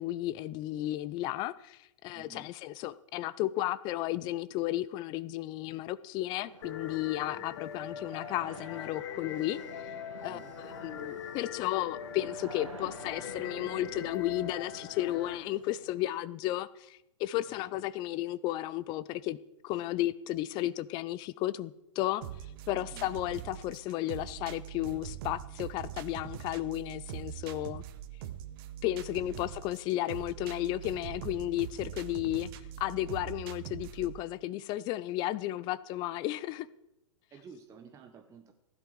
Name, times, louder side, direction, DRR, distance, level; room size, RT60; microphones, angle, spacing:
voice 1, 0.0-9.9 10.2-19.4 19.6-27.8 28.8-32.5 32.8-36.7, left 15 dB, 25° left, 0.4 m, -34 dB
voice 2, 2.1-2.5 7.3-7.5 10.3-10.5 17.4-17.6 22.8-23.1 29.3-29.5 37.3-38.5, right 6 dB, 20° right, 0.9 m, -53 dB
sound 1, 6.4-16.2, right 6 dB, 70° right, 1.0 m, -50 dB
sound 2, 6.6-15.4, left 9 dB, 55° left, 1.0 m, -42 dB
sound 3, 22.2-34.2, right 11 dB, 45° right, 1.0 m, -43 dB
16.0 x 11.0 x 4.8 m
figure-of-eight pair, 105°, 17 cm